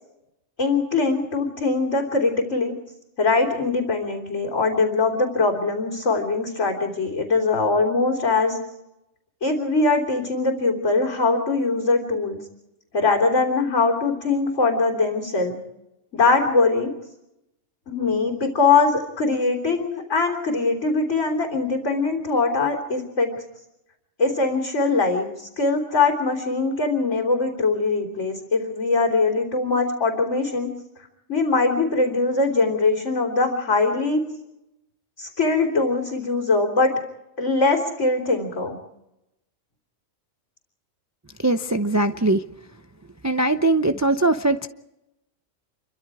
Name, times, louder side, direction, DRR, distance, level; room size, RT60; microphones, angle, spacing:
voice 1, 0.6-2.7 3.2-8.6 9.4-12.4 12.9-15.6 16.1-16.9 17.9-23.3 24.2-30.7 31.3-34.2 35.2-37.0 37.4-38.8, left 3 dB, 70° left, -1 dB, 3.7 m, -22 dB
voice 2, 41.4-42.5 43.2-44.7, right 2 dB, 20° right, 8 dB, 0.6 m, -21 dB
28.5 x 24.0 x 4.9 m, 0.89 s
omnidirectional pair, 1.4 m